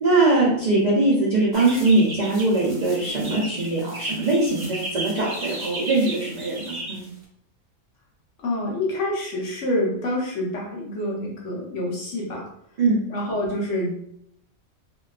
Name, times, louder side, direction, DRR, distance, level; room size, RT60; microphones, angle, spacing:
voice 1, 0.0-7.0 12.8-13.0, right 2 dB, 80° right, -5 dB, 0.4 m, -21 dB
sound 1, 1.5-7.2, right 1 dB, 30° right, 0.8 m, -35 dB
voice 2, 8.4-12.4 13.1-13.9, left 1 dB, 65° left, -3 dB, 1.0 m, -27 dB
2.7 x 2.2 x 2.3 m, 0.70 s
omnidirectional pair, 1.5 m